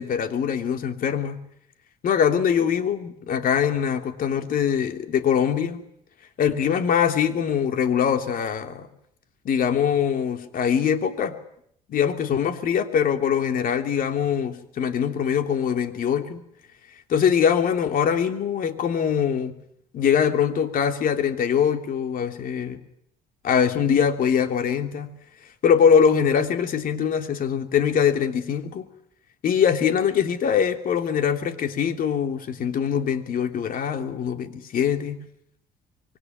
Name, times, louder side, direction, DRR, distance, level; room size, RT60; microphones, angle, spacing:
voice 1, 0.0-1.4 2.0-5.8 6.4-8.9 9.4-11.4 11.9-16.4 17.1-19.5 19.9-22.8 23.4-25.1 25.6-28.9 29.4-35.2, left 7 dB, 55° left, 3.1 m, -23 dB
25.5 x 23.0 x 9.4 m
cardioid pair, 110°, 17 cm